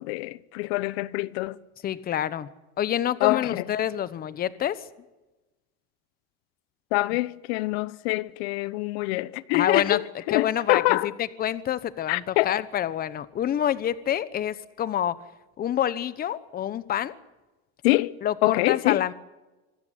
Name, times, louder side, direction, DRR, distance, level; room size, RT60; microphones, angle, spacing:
voice 1, 0.0-1.6 3.2-3.6 6.9-11.1 12.1-12.5 17.8-19.0, left 21 dB, 85° left, 0.9 m, -25 dB
voice 2, 1.8-2.5 2.8-4.8 9.5-10.0 10.3-15.2 15.6-17.1 18.2-19.1, left 10 dB, 30° left, 1.1 m, -27 dB
26.0 x 14.0 x 10.0 m
cardioid pair, 155°, 31 cm